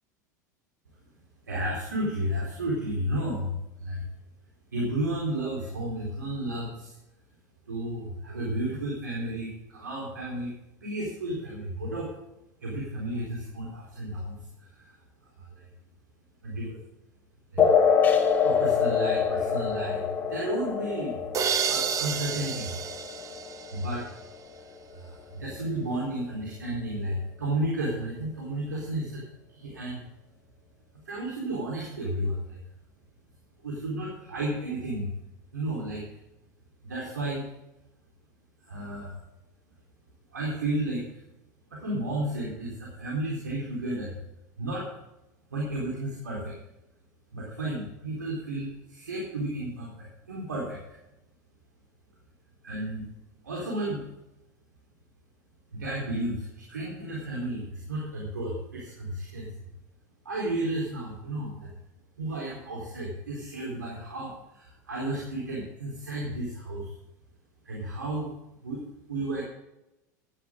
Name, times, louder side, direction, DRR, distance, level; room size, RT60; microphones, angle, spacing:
voice 1, 1.5-4.1 4.7-6.9 7.7-10.5 10.8-12.1 12.6-15.0 15.4-15.6 16.4-16.8 17.5-17.7 18.4-21.4 21.7-22.7 23.7-24.0 24.9-29.2 29.5-30.0 31.0-32.6 33.6-35.1 35.5-36.0 36.8-37.4 38.7-39.1 40.3-41.2 41.7-44.2 44.6-44.9 45.5-46.6 47.3-50.8 52.6-53.1 53.4-54.0 55.7-59.5 60.2-61.7 62.2-66.9 67.6-68.3 68.6-69.4, right 1 dB, 85° right, -3 dB, 4.1 m, -32 dB
sound 1, 17.6-24.6, left 6 dB, 20° left, 2.8 m, -26 dB
sound 2, 21.3-24.2, right 7 dB, 35° right, 1.4 m, -30 dB
16.0 x 12.0 x 3.8 m, 0.90 s
hypercardioid pair, 85°, 10 cm